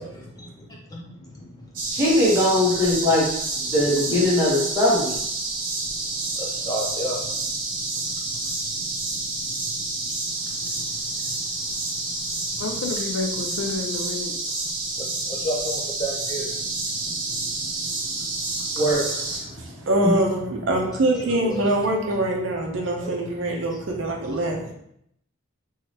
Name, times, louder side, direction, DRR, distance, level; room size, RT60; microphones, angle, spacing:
voice 1, 0.0-2.0 2.5-2.9 3.7-3.8 5.5-12.7 13.3-13.4 14.8-19.9 20.5-20.6 21.1-21.9 22.2-22.3 23.0-24.7, equal, 20° left, -2 dB, 0.6 m, -37 dB
sound 1, 1.7-19.4, right 3 dB, 40° right, 1.0 m, -29 dB
voice 2, 1.9-3.3 3.7-5.1 18.7-19.0 20.0-20.1, left 1 dB, 15° right, -6 dB, 1.0 m, -20 dB
voice 3, 12.6-14.4, left 3 dB, 70° left, 4 dB, 0.5 m, -29 dB
voice 4, 19.6-24.7, right 1 dB, 60° right, 1 dB, 0.6 m, -24 dB
3.7 x 3.1 x 2.8 m, 0.74 s
head